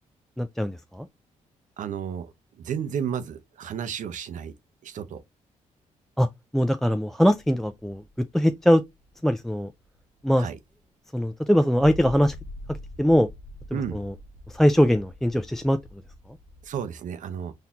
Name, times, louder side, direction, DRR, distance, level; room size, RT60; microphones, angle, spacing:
voice 1, 0.4-1.1 6.2-6.3 6.5-8.0 8.3-8.8 9.2-9.7 10.2-10.5 11.1-12.4 13.0-13.3 13.7-14.1 14.5-15.8, equal, 5° left, 0.3 m, -21 dB
voice 2, 1.8-2.3 2.6-4.5 4.8-5.2 10.4-10.6 13.7-14.0 16.6-17.5, right 8 dB, 70° right, 0.6 m, -32 dB
sound 1, 7.3-10.6 11.4-16.8, left 1 dB, 75° left, 0.6 m, -44 dB
4.0 x 2.7 x 2.7 m
cardioid pair, 70°, 14 cm